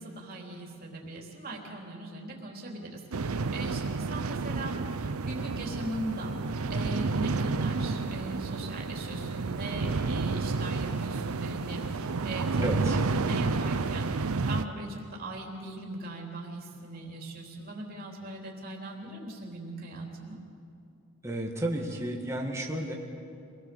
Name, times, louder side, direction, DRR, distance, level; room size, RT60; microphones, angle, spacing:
voice 1, 0.0-6.3 6.7-20.4, right 1 dB, 45° right, -1 dB, 3.5 m, -39 dB
sound 1, 3.1-14.6, right 4 dB, 85° right, 0.7 m, -30 dB
voice 2, 12.6-13.0 21.2-23.0, right 1 dB, 15° right, 0 dB, 2.0 m, -32 dB
26.5 x 19.0 x 7.0 m, 2.6 s
head